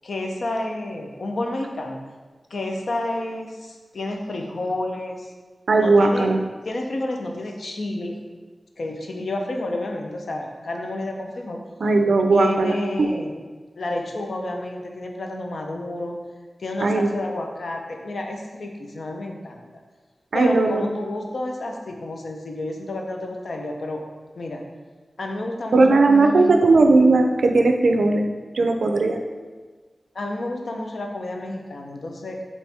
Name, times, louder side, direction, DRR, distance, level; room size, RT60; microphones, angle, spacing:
voice 1, 0.0-2.0 2.5-5.3 5.8-6.3 6.6-8.2 8.8-11.6 12.3-13.3 13.8-16.2 16.6-19.6 20.3-24.0 24.4-24.7 25.2-26.8 30.1-32.4, left 2 dB, 80° left, 2 dB, 0.5 m, -30 dB
voice 2, 5.7-6.4 11.8-13.1 16.8-17.1 20.3-20.9 25.7-28.3 28.5-29.2, right 3 dB, 85° right, 5 dB, 0.3 m, -17 dB
4.2 x 3.0 x 3.4 m, 1.4 s
wide cardioid pair, 85°, 0 cm